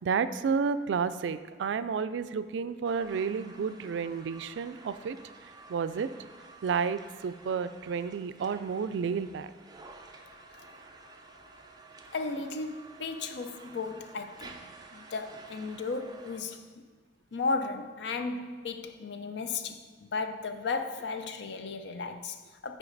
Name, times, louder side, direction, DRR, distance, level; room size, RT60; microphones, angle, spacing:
voice 1, 0.0-5.2 5.7-6.1 6.6-9.5, right 6 dB, 80° right, 0.3 m, -31 dB
sound 1, 2.8-16.4, right 3 dB, 20° right, 0.5 m, -51 dB
voice 2, 12.1-14.6 14.9-16.7 17.3-22.8, left 4 dB, 70° left, 0.5 m, -35 dB
9.0 x 4.6 x 3.9 m
head